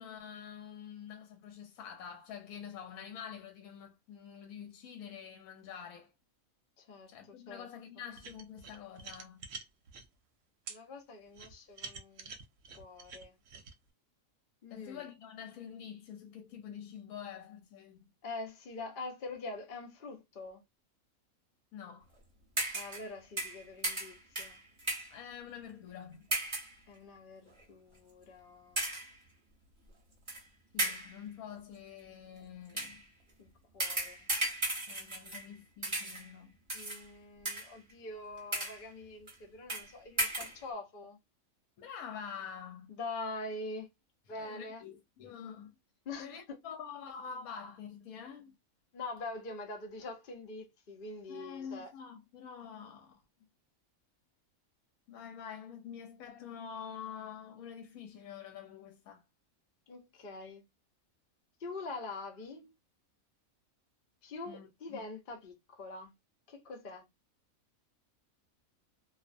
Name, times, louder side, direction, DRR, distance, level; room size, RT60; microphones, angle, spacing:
voice 1, 0.0-6.1 7.1-9.5 14.7-18.1 21.7-22.1 25.0-26.3 30.7-33.1 34.9-36.6 41.8-42.9 44.4-45.7 46.2-48.5 51.3-53.2 55.1-59.2 64.4-65.0, left 7 dB, 85° left, 1.0 m, -47 dB
voice 2, 6.8-7.7 10.7-12.3 12.8-13.4 14.6-15.0 18.2-20.6 22.7-24.6 26.9-28.8 33.4-34.3 36.7-41.2 43.0-43.9 44.3-44.8 46.1-46.6 48.9-51.9 59.9-60.6 61.6-62.7 64.2-66.1 66.5-67.0, left 2 dB, 50° left, 0.6 m, -44 dB
sound 1, 8.2-10.1 10.7-10.8 11.3-13.7, right 5 dB, 65° right, 0.9 m, -46 dB
sound 2, 22.6-23.1 23.4-25.2 26.3-26.8 27.5-27.6 28.8-29.2 30.3-30.4 30.8-31.2 32.7-33.0 33.8-35.5 35.8-36.3 36.7-37.0 37.4-37.9 38.4-38.9 39.3-39.4 39.7-39.9 40.2-40.6, right 1 dB, 25° right, 0.8 m, -35 dB
2.4 x 2.1 x 2.5 m
omnidirectional pair, 1.5 m